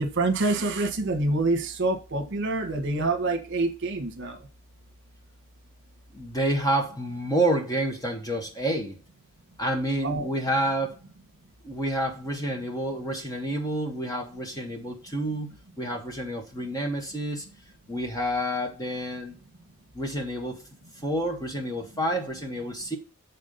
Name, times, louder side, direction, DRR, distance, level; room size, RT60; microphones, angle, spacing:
voice 1, 0.0-4.4 10.0-10.3, right 2 dB, 55° right, 1.3 m, -26 dB
voice 2, 6.1-8.9 9.6-11.0 11.6-17.4 17.9-19.4 19.9-20.6 21.0-23.0, right 1 dB, 15° left, 1.6 m, -29 dB
8.5 x 4.3 x 5.4 m
head